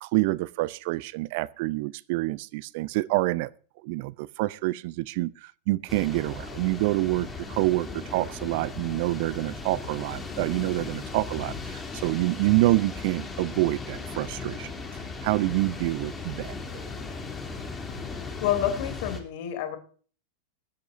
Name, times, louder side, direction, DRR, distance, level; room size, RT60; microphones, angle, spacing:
voice 1, 0.0-3.5 3.8-14.7 15.2-16.5, right 20 dB, 50° right, 0.5 m, -27 dB
sound 1, 5.9-19.2, left 4 dB, 15° left, 3.0 m, -37 dB
voice 2, 18.4-19.8, left 10 dB, 50° left, 3.2 m, -28 dB
21.0 x 11.0 x 2.7 m
figure-of-eight pair, 90°, 0 cm